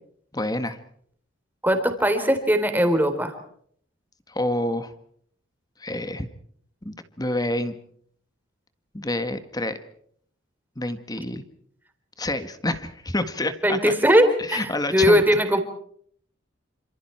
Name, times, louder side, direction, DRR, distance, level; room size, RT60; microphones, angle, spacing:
voice 1, 0.3-0.8 4.3-4.9 5.8-6.3 6.9-7.7 8.9-9.8 10.8-11.4 12.2-13.9 14.4-15.2, left 1 dB, 20° left, 10 dB, 1.6 m, -28 dB
voice 2, 1.6-3.4 13.6-15.6, equal, 10° right, 7 dB, 3.6 m, -20 dB
28.0 x 27.0 x 4.5 m, 0.63 s
head